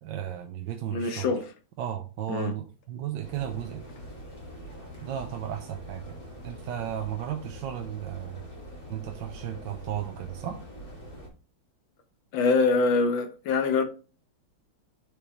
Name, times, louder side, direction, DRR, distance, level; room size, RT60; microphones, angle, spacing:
voice 1, 0.0-1.3 1.8-3.8 5.0-8.4 8.9-10.6, right 10 dB, 70° right, 1.3 m, -34 dB
voice 2, 0.9-1.5 2.3-2.5 12.3-13.8, left 4 dB, 70° left, 1.7 m, -24 dB
sound 1, 3.2-11.3, equal, 15° left, 2.1 m, -44 dB
6.9 x 6.8 x 3.1 m
omnidirectional pair, 2.2 m